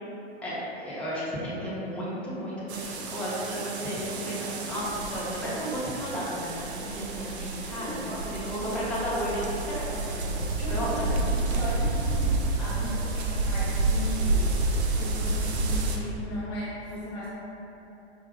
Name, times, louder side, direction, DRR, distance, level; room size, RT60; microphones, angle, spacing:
voice 1, 0.4-11.6, equal, 5° left, -10 dB, 0.9 m, -33 dB
sound 1, 2.7-16.0, right 2 dB, 70° right, 0.6 m, -29 dB
voice 2, 7.7-8.1 10.6-17.3, left 1 dB, 30° left, -9 dB, 0.6 m, -37 dB
5.0 x 2.6 x 2.4 m, 2.9 s
hypercardioid pair, 115°, 34 cm